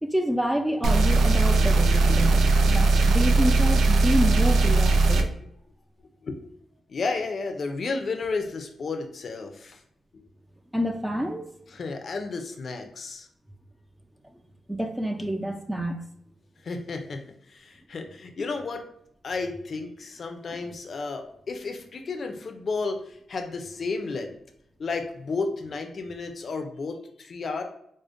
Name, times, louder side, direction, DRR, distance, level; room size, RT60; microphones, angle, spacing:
voice 1, 0.0-2.4 2.7-5.3 10.7-11.5 14.7-16.0, equal, 5° right, 5 dB, 0.4 m, -28 dB
sound 1, 0.8-5.2, right 3 dB, 85° right, 0.4 m, -19 dB
voice 2, 2.1-2.5 5.2-5.3 6.2-6.4 6.9-9.8 10.1-10.3 11.7-13.3 16.6-17.2 17.5-18.9 19.2-24.3 24.8-27.6, left 4 dB, 50° left, 5 dB, 0.5 m, -32 dB
4.9 x 2.1 x 2.5 m, 0.72 s
cardioid pair, 100°, 0 cm